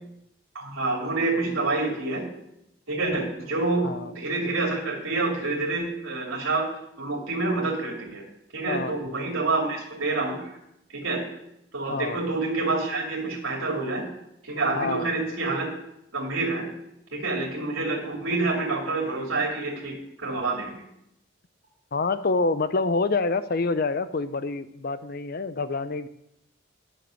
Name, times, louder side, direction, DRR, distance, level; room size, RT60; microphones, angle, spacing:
voice 1, 0.5-2.3 2.9-6.7 7.0-8.3 8.5-10.6 10.9-11.2 11.7-14.0 14.4-15.7 16.1-16.6 17.1-20.0 20.2-20.8, right 3 dB, 85° right, -2 dB, 2.6 m, -27 dB
voice 2, 14.7-15.1 21.9-26.1, left 3 dB, 50° left, 13 dB, 0.6 m, -27 dB
11.0 x 6.5 x 6.4 m, 0.80 s
head